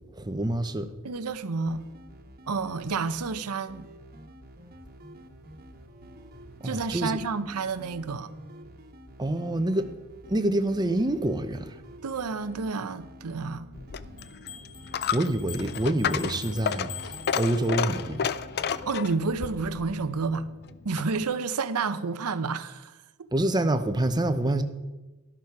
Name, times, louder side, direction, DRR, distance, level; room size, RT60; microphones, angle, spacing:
voice 1, 0.1-0.9 6.6-7.2 9.2-9.9 10.3-11.8 15.1-16.9 17.3-18.3 23.3-24.6, right 1 dB, 20° right, 0.7 m, -26 dB
voice 2, 1.0-1.8 2.5-3.9 6.6-8.3 12.0-13.7 18.9-23.0, right 4 dB, 80° right, 0.7 m, -30 dB
sound 1, 1.7-20.3, equal, 45° right, 1.4 m, -49 dB
Coin (dropping), 13.7-21.3, left 7 dB, 45° left, 0.4 m, -32 dB
sound 2, 14.2-18.2, left 8 dB, 85° left, 1.3 m, -44 dB
12.5 x 11.5 x 4.7 m
head